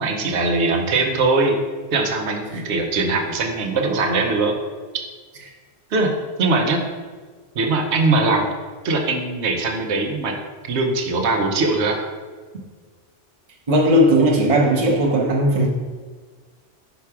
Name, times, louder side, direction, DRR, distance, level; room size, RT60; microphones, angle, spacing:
voice 1, 0.0-1.6 1.9-4.6 5.9-6.1 6.4-6.8 7.5-8.4 8.8-10.3 10.6-12.0, right 3 dB, 85° right, 3 dB, 1.1 m, -21 dB
voice 2, 13.7-15.7, equal, 35° right, -2 dB, 0.8 m, -17 dB
5.8 x 4.1 x 4.7 m, 1.5 s
omnidirectional pair, 1.1 m